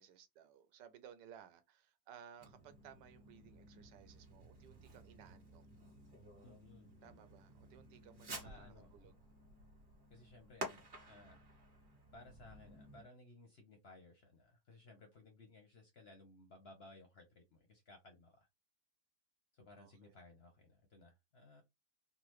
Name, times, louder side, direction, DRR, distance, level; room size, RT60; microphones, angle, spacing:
voice 1, 0.0-5.7 7.0-9.1 19.8-20.1, right 8 dB, 90° right, 1.3 m, -59 dB
Fireworks, 2.4-13.1, right 1 dB, 35° right, 1.1 m, -53 dB
voice 2, 6.4-7.3 8.4-8.9 10.1-11.4 12.1-18.5 19.5-21.6, left 2 dB, 55° left, 0.7 m, -60 dB
3.7 x 2.0 x 3.0 m
omnidirectional pair, 1.8 m